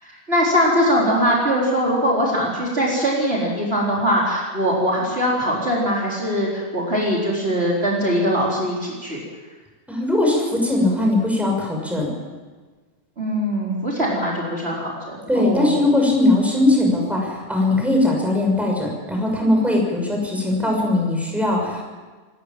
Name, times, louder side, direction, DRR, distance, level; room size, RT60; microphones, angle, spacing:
voice 1, 0.0-9.2 13.2-15.8, equal, 45° right, -4 dB, 4.4 m, -21 dB
voice 2, 9.9-12.1 15.3-21.8, left 2 dB, ahead, 0 dB, 6.1 m, -20 dB
27.5 x 14.0 x 7.5 m, 1.4 s
omnidirectional pair, 1.5 m